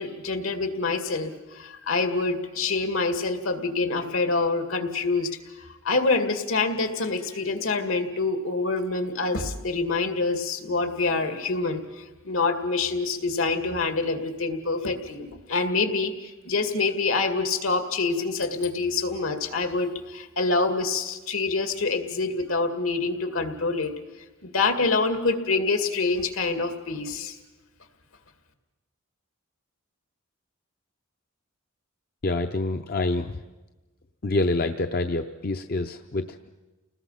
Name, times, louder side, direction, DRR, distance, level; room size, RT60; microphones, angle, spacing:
voice 1, 0.0-5.3 5.6-23.9 24.4-27.4, left 3 dB, 75° left, 7 dB, 2.2 m, -26 dB
voice 2, 32.2-33.4 34.2-36.5, left 2 dB, 45° left, 7 dB, 0.6 m, -27 dB
30.0 x 19.5 x 5.8 m, 1.2 s
head